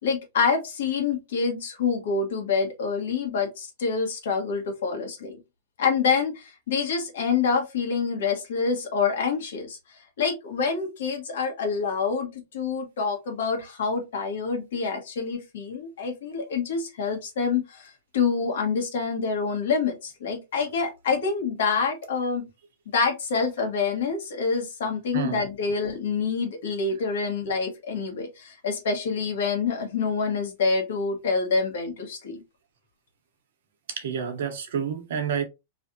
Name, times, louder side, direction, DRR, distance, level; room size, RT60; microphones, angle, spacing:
voice 1, 0.0-5.4 5.8-22.5 22.9-32.4, left 5 dB, 75° left, 1.4 m, -27 dB
voice 2, 25.1-25.8 33.9-35.4, right 7 dB, 65° right, 0.9 m, -30 dB
3.2 x 2.5 x 2.7 m
supercardioid pair, 175°, 0 cm